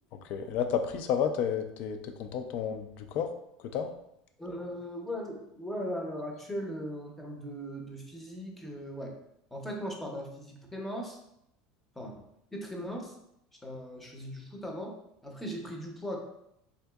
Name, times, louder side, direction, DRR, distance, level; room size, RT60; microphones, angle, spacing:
voice 1, 0.3-3.3 3.7-3.9, left 8 dB, 55° left, 8 dB, 0.3 m, -31 dB
voice 2, 4.4-9.2 9.5-11.2 12.0-12.3 12.5-13.1 13.6-15.0 15.2-16.2, equal, 5° left, 0 dB, 0.6 m, -38 dB
3.7 x 2.6 x 2.3 m, 0.79 s
supercardioid pair, 130°, 3 cm